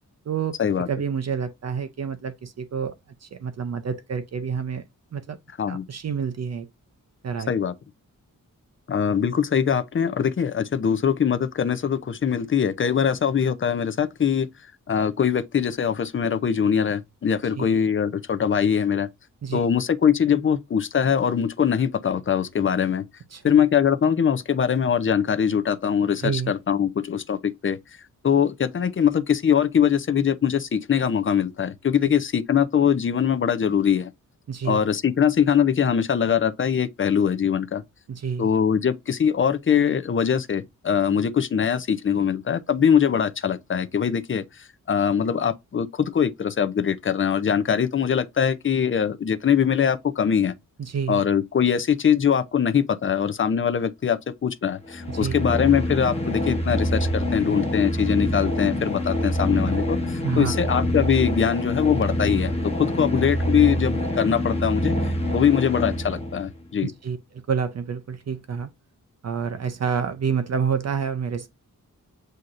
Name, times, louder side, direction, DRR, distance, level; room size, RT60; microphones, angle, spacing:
voice 1, 0.3-2.9 3.2-4.8 5.1-5.4 5.7-6.7 7.2-7.5 17.6-17.7 19.4-19.6 23.3-23.4 26.2-26.5 34.5-34.8 38.1-38.5 50.8-51.2 55.1-55.3 60.2-60.6 66.8-68.7 69.2-71.5, right 6 dB, 50° right, 0.5 m, -28 dB
voice 2, 8.9-14.5 14.9-19.1 19.5-23.1 23.4-27.8 28.2-34.1 34.7-37.8 38.4-50.5 51.1-66.9, left 8 dB, 40° left, 0.4 m, -22 dB
sound 1, 54.9-66.5, equal, 20° left, 1.0 m, -26 dB
7.7 x 2.8 x 2.4 m
wide cardioid pair, 160°, 33 cm